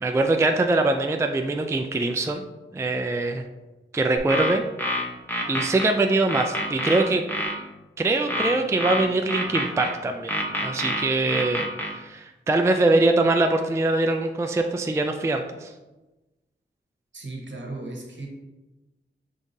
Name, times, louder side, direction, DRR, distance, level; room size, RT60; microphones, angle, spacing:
voice 1, 0.0-2.4 2.7-3.4 3.9-4.6 4.9-5.0 5.5-7.2 8.0-15.7, right 2 dB, 15° right, 5 dB, 0.3 m, -23 dB
sound 1, 4.2-5.9 6.3-7.6 8.3-9.9 10.3-11.9, left 1 dB, 10° left, 0.8 m, -27 dB
voice 2, 17.1-18.3, right 2 dB, 65° right, 0 dB, 1.1 m, -36 dB
5.5 x 3.6 x 2.6 m, 1.1 s
wide cardioid pair, 75°, 20 cm